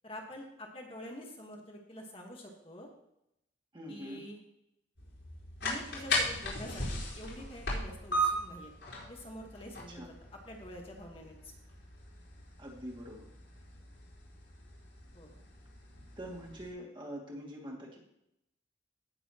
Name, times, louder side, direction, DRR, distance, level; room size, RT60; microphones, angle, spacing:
voice 1, 0.0-2.9 3.9-4.4 5.6-8.7 9.1-11.5 15.1-15.3, equal, 30° left, 0 dB, 1.4 m, -47 dB
voice 2, 3.7-4.2 9.9-10.1 12.6-13.3 16.2-18.0, equal, 25° right, -2 dB, 2.3 m, -44 dB
sound 1, 5.0-16.7, equal, 80° left, 4.7 m, -38 dB
17.5 x 6.9 x 3.0 m, 0.80 s
head